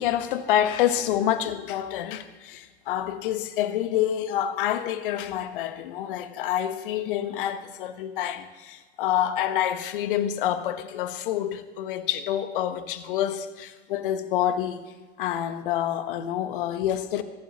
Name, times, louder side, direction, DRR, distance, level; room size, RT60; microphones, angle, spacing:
voice 1, 0.0-17.2, left 11 dB, 55° left, 1.2 m, -27 dB
24.5 x 11.0 x 3.0 m
figure-of-eight pair, 90°, 32 cm